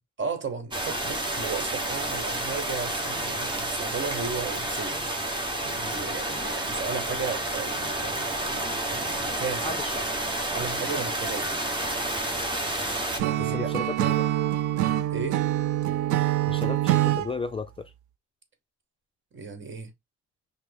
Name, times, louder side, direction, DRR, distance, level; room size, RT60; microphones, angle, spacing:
voice 1, 0.2-5.2 5.6-9.9 10.5-11.5 13.1-13.7 15.1-15.4 19.3-19.9, right 5 dB, 40° right, 1.2 m, -35 dB
sound 1, 0.7-13.2, right 1 dB, 15° right, 1.2 m, -30 dB
voice 2, 9.6-9.9 13.4-14.3 16.4-17.9, left 4 dB, 20° left, 0.4 m, -34 dB
Acoustic guitar / Strum, 13.2-17.3, right 14 dB, 85° right, 0.5 m, -25 dB
5.8 x 2.1 x 3.4 m
cardioid pair, 95°, 29 cm